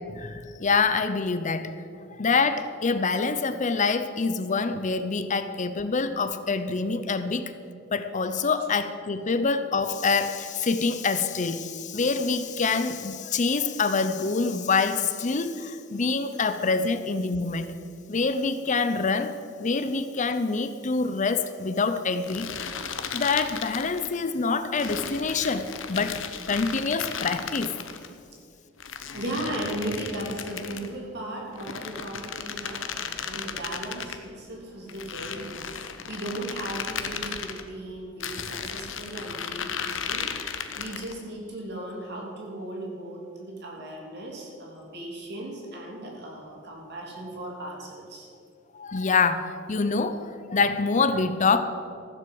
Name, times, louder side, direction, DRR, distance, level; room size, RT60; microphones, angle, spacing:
voice 1, 0.1-1.7 2.2-7.5 7.9-17.7 18.1-22.5 23.1-26.2 26.5-27.8 48.7-51.6, left 4 dB, 40° left, 11 dB, 0.6 m, -26 dB
sound 1, 22.2-24.1 24.8-28.1 28.8-30.9 31.5-34.2 34.9-37.6 38.2-41.2, left 7 dB, 70° left, 1.0 m, -35 dB
voice 2, 29.1-48.3, right 1 dB, 55° right, -1 dB, 3.4 m, -37 dB
15.0 x 7.9 x 7.8 m, 2.3 s
head